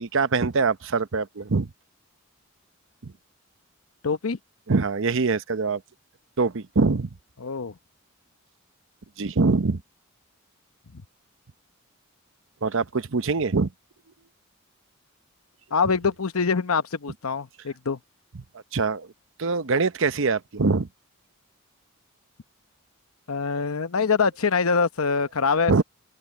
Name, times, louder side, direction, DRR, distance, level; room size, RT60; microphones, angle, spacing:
voice 1, 0.0-1.7 3.0-3.1 4.7-5.8 6.4-7.1 9.2-9.8 12.6-13.7 18.7-19.1 19.4-20.9 25.7-25.8, right 4 dB, 65° right, 0.8 m, -23 dB
voice 2, 4.0-4.4 7.4-7.7 10.9-11.0 15.7-18.0 23.3-25.8, left 5 dB, 80° left, 0.9 m, -24 dB
open air
head